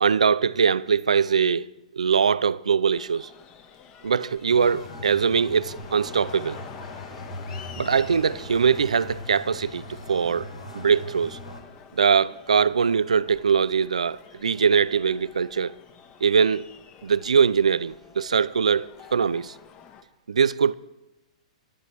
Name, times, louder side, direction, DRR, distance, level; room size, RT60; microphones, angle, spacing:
voice 1, 0.0-1.7 1.9-3.3 4.0-6.6 7.8-10.5 10.7-11.4 11.9-15.8 16.2-16.7 17.0-19.5 20.3-20.7, right 6 dB, 80° right, 0.4 m, -22 dB
sound 1, 2.9-20.0, left 7 dB, 30° left, 1.2 m, -47 dB
sound 2, 4.5-11.6, left 2 dB, 85° left, 2.5 m, -40 dB
25.0 x 12.0 x 3.2 m
figure-of-eight pair, 110°, 4 cm